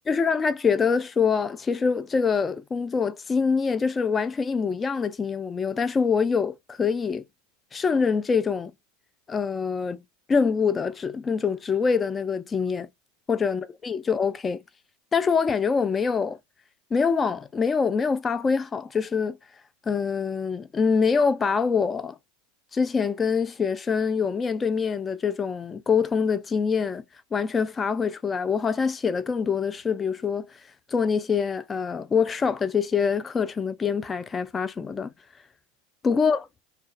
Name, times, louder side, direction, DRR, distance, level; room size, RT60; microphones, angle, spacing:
voice 1, 0.1-7.2 7.7-8.7 9.3-10.0 10.3-12.9 13.3-14.6 15.1-16.4 16.9-19.4 19.9-22.2 22.7-27.0 27.3-30.5 30.9-35.1 36.0-36.4, left 5 dB, 25° left, 0.4 m, -25 dB
2.3 x 2.3 x 2.3 m
hypercardioid pair, 90°, 0 cm